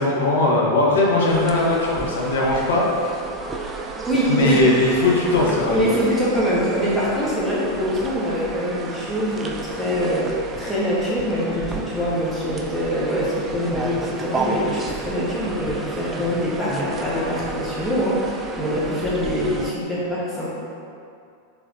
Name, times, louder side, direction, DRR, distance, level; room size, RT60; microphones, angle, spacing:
voice 1, 0.0-3.1 4.3-5.8, left 2 dB, 60° left, -3 dB, 0.8 m, -19 dB
sound 1, 1.3-19.7, right 3 dB, 20° right, 0.3 m, -32 dB
voice 2, 4.0-4.6 5.7-10.3 10.6-18.2 18.6-20.5, equal, ahead, -9 dB, 1.2 m, -24 dB
4.6 x 3.4 x 2.6 m, 2.4 s
figure-of-eight pair, 90°, 0 cm